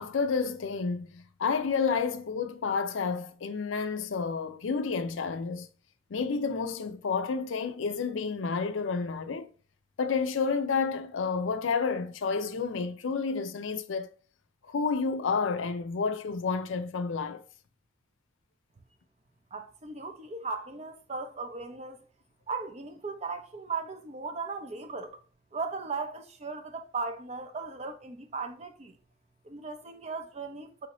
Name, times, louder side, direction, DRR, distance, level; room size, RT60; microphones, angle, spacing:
voice 1, 0.0-5.7 6.1-9.5 10.0-14.1 14.6-17.4, left 5 dB, 85° left, 0.5 m, -30 dB
voice 2, 19.5-22.0 22.5-25.1 25.5-29.0 29.4-30.9, right 4 dB, 35° right, 0.7 m, -37 dB
5.5 x 2.7 x 2.9 m
head